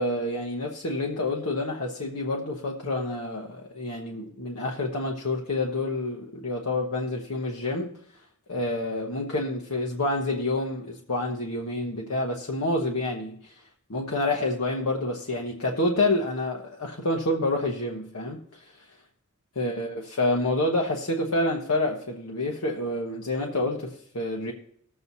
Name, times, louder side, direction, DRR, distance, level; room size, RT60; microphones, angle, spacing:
voice 1, 0.0-7.9 8.5-13.6 13.9-18.6 19.6-24.5, left 2 dB, 85° left, -1 dB, 1.1 m, -28 dB
19.5 x 7.7 x 2.8 m, 0.66 s
head